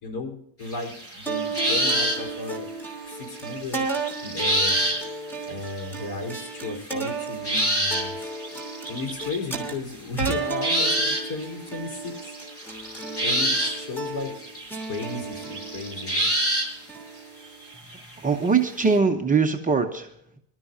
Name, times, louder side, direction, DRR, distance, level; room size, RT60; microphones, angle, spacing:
voice 1, 0.0-2.7 3.1-3.9 4.2-4.8 5.5-8.2 8.9-12.3 13.2-14.3 14.8-16.3, left 2 dB, 50° left, 3 dB, 4.5 m, -34 dB
sound 1, 0.7-2.4 2.7-2.8 3.1-5.0 5.3-5.9 6.6-9.4 10.2-10.3 10.6-11.4 11.7-16.7 17.4-18.1 18.5-18.6, right 1 dB, 30° left, 6.4 m, -27 dB
sound 2, 1.3-17.7, right 3 dB, 5° left, 2.9 m, -34 dB
voice 2, 17.9-20.4, right 5 dB, 15° right, 2 dB, 0.8 m, -23 dB
25.0 x 12.5 x 2.8 m, 0.72 s
cardioid pair, 155°, 49 cm